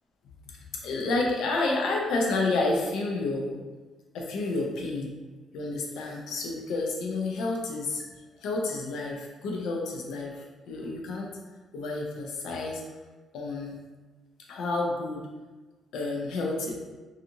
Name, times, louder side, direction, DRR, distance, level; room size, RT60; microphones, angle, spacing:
voice 1, 0.8-3.6 4.1-5.1 5.5-8.0 8.4-11.4 11.7-12.8 13.3-13.8 14.5-15.3 15.9-16.7, left 2 dB, 85° left, -1 dB, 0.5 m, -30 dB
2.6 x 2.4 x 2.8 m, 1.3 s
cardioid pair, 90°, 0 cm